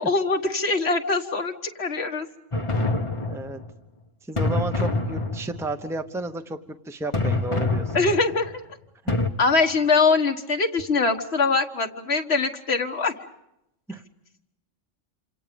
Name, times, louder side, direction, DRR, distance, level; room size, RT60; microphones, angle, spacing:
voice 1, 0.0-2.3 7.9-8.5 9.4-13.1, left 4 dB, 60° left, 5 dB, 1.7 m, -23 dB
sound 1, 2.5-3.7 4.4-5.7 7.1-8.5 9.1-9.3, left 2 dB, 25° left, 1.4 m, -26 dB
voice 2, 3.0-3.6 4.3-6.6 6.9-7.9 9.0-9.2 13.9-14.0, right 2 dB, ahead, 7 dB, 0.9 m, -32 dB
27.5 x 26.5 x 5.2 m, 0.83 s
omnidirectional pair, 1.3 m